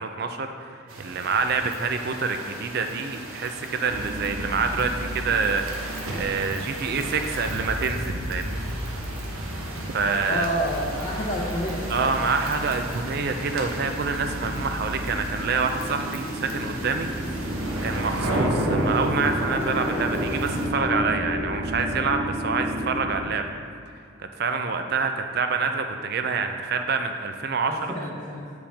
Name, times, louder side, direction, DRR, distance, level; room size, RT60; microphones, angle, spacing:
voice 1, 0.0-8.6 9.9-10.5 11.9-17.1 17.4-17.5 17.8-23.5 24.2-27.8, right 4 dB, 50° right, 6 dB, 0.4 m, -27 dB
sound 1, 0.9-20.7, right 1 dB, 85° right, 1.0 m, -34 dB
sound 2, 3.8-23.2, equal, 20° right, 1.1 m, -33 dB
voice 2, 10.3-12.1 27.7-28.5, equal, 30° left, -8 dB, 0.8 m, -29 dB
8.7 x 4.9 x 3.4 m, 2.4 s
head